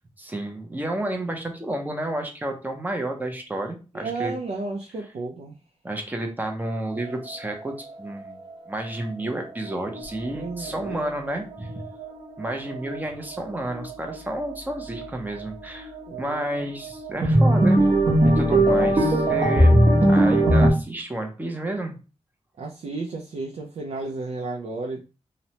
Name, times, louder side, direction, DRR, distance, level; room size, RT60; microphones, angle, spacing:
voice 1, 0.2-4.3 5.8-8.4 8.7-11.7 12.4-15.9 16.2-17.9 18.2-19.8 20.1-22.0, right 1 dB, 15° right, 3 dB, 0.5 m, -31 dB
voice 2, 3.9-5.5 10.3-11.4 16.1-16.7 22.6-25.1, right 3 dB, 75° right, -1 dB, 0.5 m, -33 dB
sound 1, 7.0-7.7 8.3-8.4 9.6-20.7, right 1 dB, 45° right, 0.8 m, -21 dB
2.9 x 2.1 x 2.8 m, 0.32 s
wide cardioid pair, 170°, 11 cm